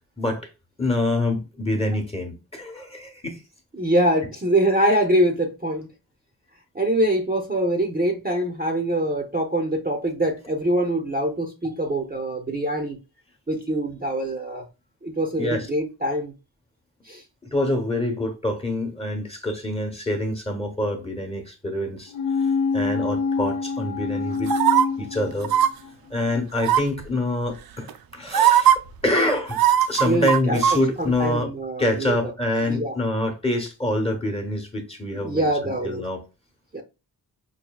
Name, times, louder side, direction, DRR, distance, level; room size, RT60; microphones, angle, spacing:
voice 1, 0.2-0.5 0.8-3.4 15.4-15.7 17.5-22.1 22.4-24.5 25.0-25.5 26.1-28.7 29.0-29.6 29.9-31.5 31.8-36.2, left 1 dB, 15° left, 1.0 m, -26 dB
voice 2, 3.8-5.9 6.7-13.0 13.5-14.6 15.0-16.3 17.0-17.2 30.1-32.2 32.6-32.9 35.1-36.0 36.7-36.8, right 1 dB, 25° right, 0.7 m, -24 dB
sound 1, 22.1-25.9 26.2-26.3, left 5 dB, 70° left, 0.5 m, -26 dB
sound 2, 24.5-24.8 25.4-25.7 26.6-27.0 27.9-28.0 28.3-28.8 29.5-30.8 31.1-31.2, right 10 dB, 65° right, 0.5 m, -18 dB
5.8 x 2.6 x 2.3 m
wide cardioid pair, 125°, 39 cm